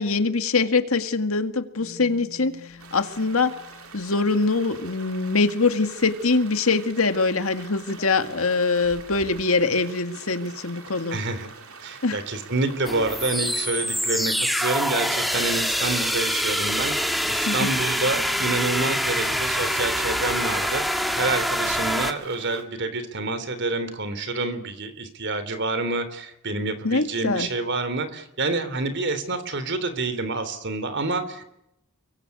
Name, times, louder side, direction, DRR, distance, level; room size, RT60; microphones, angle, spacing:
voice 1, 0.0-2.6 2.9-3.5 3.9-11.2 12.0-12.2 17.5-17.7 26.8-27.5, left 3 dB, 80° left, 8 dB, 2.0 m, -23 dB
sound 1, 1.8-6.5 6.8-7.0 7.2-9.4, left 3 dB, 50° left, 3.0 m, -49 dB
sound 2, 2.8-22.6, right 5 dB, 90° right, 3.7 m, -45 dB
voice 2, 11.1-11.5 11.8-31.4, right 3 dB, 55° right, 11 dB, 3.4 m, -28 dB
sound 3, 12.9-22.1, equal, ahead, 1.9 m, -25 dB
29.0 x 23.5 x 8.4 m, 0.83 s
head